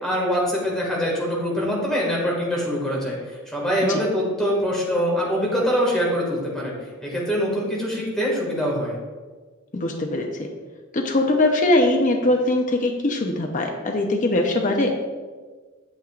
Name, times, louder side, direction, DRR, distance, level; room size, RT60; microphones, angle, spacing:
voice 1, 0.0-6.7 7.0-8.9, equal, 5° left, -4 dB, 2.0 m, -24 dB
voice 2, 9.7-10.3 10.9-15.0, left 2 dB, 35° left, 2 dB, 0.7 m, -21 dB
8.7 x 7.6 x 2.5 m, 1.4 s
head